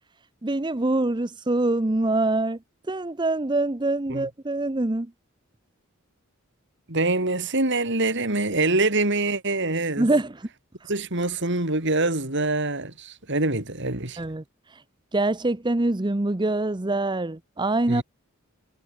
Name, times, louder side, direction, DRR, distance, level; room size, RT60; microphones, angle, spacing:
voice 1, 0.4-2.6 2.9-5.1 10.0-10.5 10.8-10.9 14.2-14.4 14.7-14.8 15.1-18.0, right 2 dB, 20° right, 0.7 m, -24 dB
voice 2, 6.9-10.1 10.9-14.2 17.9-18.0, right 2 dB, 55° right, 4.2 m, -25 dB
head